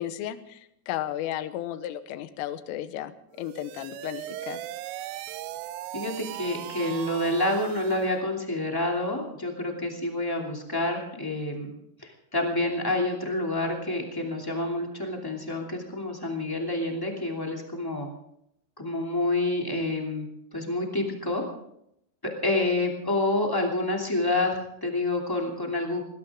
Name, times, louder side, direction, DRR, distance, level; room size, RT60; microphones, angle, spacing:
voice 1, 0.0-3.1 3.4-4.6, left 12 dB, 85° left, 11 dB, 3.5 m, -34 dB
sound 1, 3.3-8.2, right 14 dB, 80° right, 2.7 m, -38 dB
voice 2, 5.9-11.7 12.0-18.1 18.8-20.2 20.5-21.4 22.2-26.0, left 2 dB, 15° left, 0 dB, 0.8 m, -28 dB
20.0 x 19.5 x 3.7 m, 0.75 s
omnidirectional pair, 5.8 m